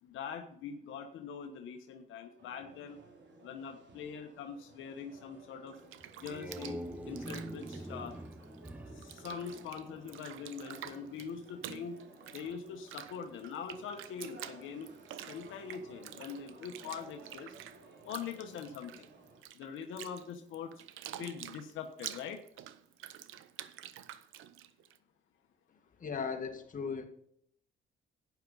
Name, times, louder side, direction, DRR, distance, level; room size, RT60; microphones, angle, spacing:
voice 1, 0.0-3.0 3.4-5.8 6.2-8.1 8.9-12.0 12.3-14.9 15.2-17.6 18.0-19.1 19.5-20.7 21.2-22.4, left 6 dB, 85° left, 5 dB, 1.2 m, -43 dB
sound 1, 2.4-19.4, right 2 dB, 65° right, 3.2 m, -57 dB
Bathtub (filling or washing), 5.7-8.7 9.0-25.0, right 12 dB, 85° right, 0.7 m, -48 dB
sound 2, 6.0-10.2, right 1 dB, 10° right, 0.8 m, -44 dB
voice 2, 26.0-27.1, left 5 dB, 40° left, 4 dB, 2.0 m, -37 dB
11.5 x 9.5 x 4.0 m, 0.67 s
cardioid pair, 90°, 20 cm